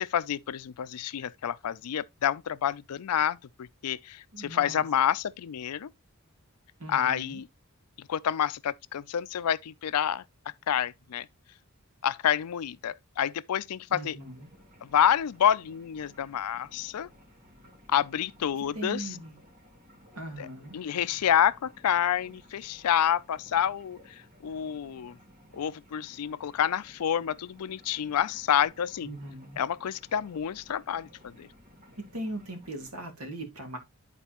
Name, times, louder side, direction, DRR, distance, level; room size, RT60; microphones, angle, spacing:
voice 1, 0.0-5.9 6.9-7.5 8.0-10.2 10.7-11.3 12.0-14.2 14.8-17.1 17.9-19.2 20.4-20.5 20.7-25.2 25.5-29.1 29.6-31.5, left 9 dB, 85° left, 0.4 m, -28 dB
voice 2, 4.3-4.8 6.8-7.4 13.9-14.5 18.7-19.4 20.2-20.8 29.0-29.6 32.0-33.8, right 1 dB, 75° right, 2.0 m, -39 dB
sound 1, 14.2-32.9, equal, 40° right, 2.4 m, -57 dB
11.0 x 4.1 x 2.9 m
head